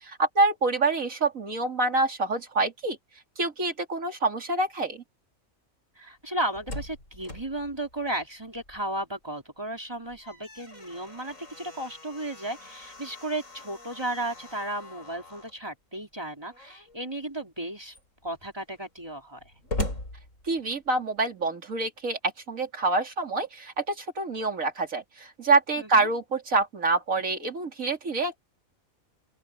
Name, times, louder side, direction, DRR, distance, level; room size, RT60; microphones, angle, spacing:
voice 1, 0.0-3.0 3.4-5.0 20.5-22.2 22.5-28.4, right 3 dB, 80° right, 3.3 m, -26 dB
voice 2, 5.9-17.9 18.2-19.5 25.8-26.1, right 1 dB, 20° right, 3.3 m, -34 dB
Slam, 6.3-9.1 9.4-9.5 9.9-15.6 16.5-17.0 17.6-17.7 17.9-21.0, left 1 dB, 75° left, 8.1 m, -40 dB
open air
omnidirectional pair, 1.4 m